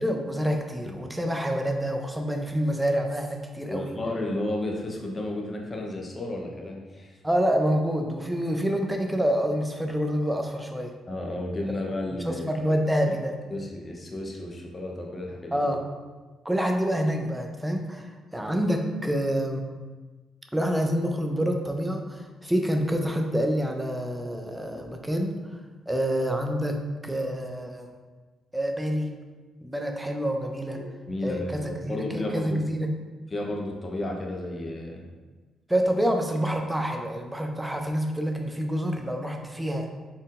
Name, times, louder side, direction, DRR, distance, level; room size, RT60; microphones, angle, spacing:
voice 1, 0.0-3.9 7.2-10.9 12.2-13.3 15.5-15.8 16.4-19.6 20.5-25.6 25.9-26.8 27.0-27.9 28.5-29.1 29.6-30.8 31.2-32.9 35.7-39.9, equal, 5° right, 3 dB, 0.5 m, -27 dB
voice 2, 3.7-7.2 11.1-12.5 13.1-13.2 13.5-15.6 30.7-32.6 33.3-35.0, left 1 dB, 30° left, 0 dB, 0.7 m, -32 dB
4.4 x 3.7 x 2.5 m, 1.3 s
cardioid pair, 90°, 0 cm